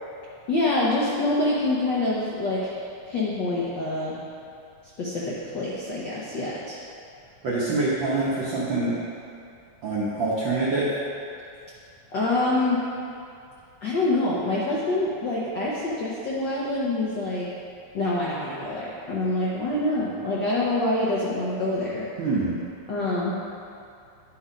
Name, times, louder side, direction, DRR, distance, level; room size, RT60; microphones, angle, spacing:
voice 1, 0.5-4.2 5.0-6.8 12.1-12.8 13.8-17.5 17.9-22.1 22.9-23.4, left 2 dB, 80° left, -6 dB, 1.0 m, -26 dB
voice 2, 7.4-8.9 9.8-10.9 22.2-22.6, right 3 dB, 75° right, -7 dB, 1.1 m, -25 dB
11.0 x 4.4 x 5.0 m, 2.5 s
omnidirectional pair, 3.5 m